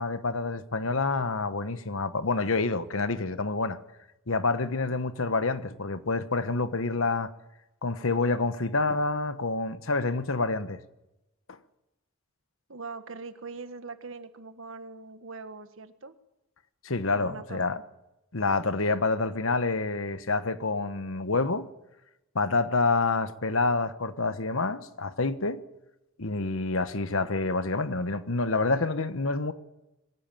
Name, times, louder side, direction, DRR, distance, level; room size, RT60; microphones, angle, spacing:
voice 1, 0.0-3.8 4.3-7.3 7.8-10.8 16.8-17.8 18.3-21.7 22.3-25.6 26.2-29.5, left 3 dB, 70° left, 1.2 m, -27 dB
voice 2, 12.7-16.1 17.1-17.9, right 4 dB, 65° right, 1.5 m, -42 dB
22.0 x 15.5 x 9.1 m
head